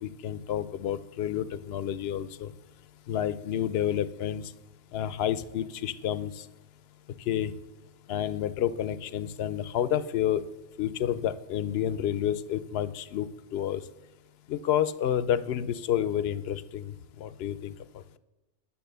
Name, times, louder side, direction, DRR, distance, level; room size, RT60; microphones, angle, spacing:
voice 1, 0.0-2.5 3.1-4.5 4.9-6.4 7.3-7.5 8.1-10.4 10.8-13.8 14.5-18.0, left 10 dB, 65° left, 16 dB, 0.7 m, -30 dB
10.5 x 6.9 x 6.7 m, 1.0 s
omnidirectional pair, 1.3 m